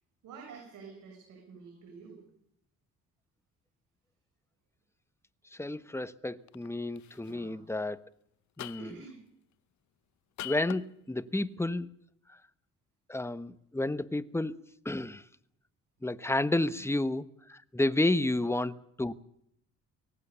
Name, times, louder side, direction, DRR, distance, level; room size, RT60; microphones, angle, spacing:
voice 1, 0.2-2.2 7.2-7.6 8.8-9.2 16.8-16.9 18.3-18.4, right 5 dB, 85° right, 0 dB, 7.8 m, -49 dB
voice 2, 5.5-8.0 8.6-8.9 10.4-11.9 12.3-12.4 13.1-15.2 16.0-19.1, left 2 dB, 10° left, 13 dB, 1.2 m, -31 dB
sound 1, 6.5-6.7 7.0-7.3 8.6-9.0 10.4-10.8, left 15 dB, 70° left, 0.8 m, -42 dB
25.0 x 18.5 x 7.0 m, 0.73 s
cardioid pair, 90°, 30 cm